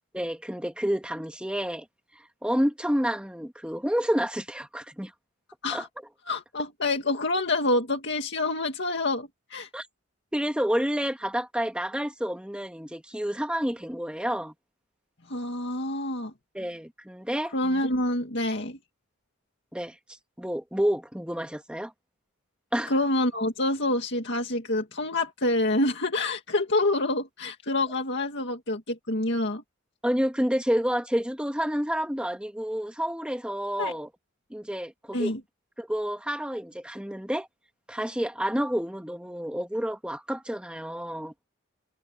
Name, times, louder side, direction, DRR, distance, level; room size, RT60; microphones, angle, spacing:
voice 1, 0.1-1.9 2.1-5.1 5.7-5.9 9.7-9.9 10.3-14.5 16.5-17.5 19.7-21.9 22.7-22.9 30.0-34.1 34.5-35.3 35.8-37.5 37.9-41.3, equal, 5° right, 1.7 m, -29 dB
voice 2, 6.3-9.7 15.3-16.3 17.5-18.8 22.9-29.6 33.8-33.9 35.1-35.4, left 2 dB, 60° left, 2.2 m, -27 dB
head